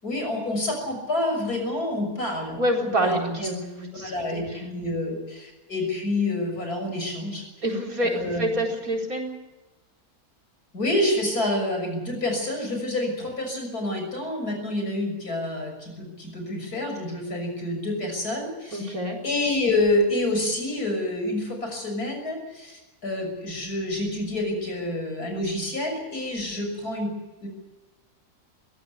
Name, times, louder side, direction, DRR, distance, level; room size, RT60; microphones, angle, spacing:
voice 1, 0.0-2.6 3.0-3.5 3.9-7.4 8.0-8.5 10.7-18.9 19.2-27.5, left 1 dB, 90° left, 3 dB, 6.9 m, -28 dB
voice 2, 2.6-4.1 7.6-9.3 18.7-19.2, right 1 dB, 65° right, 0 dB, 4.8 m, -26 dB
22.5 x 17.0 x 8.4 m, 1.1 s
omnidirectional pair, 1.6 m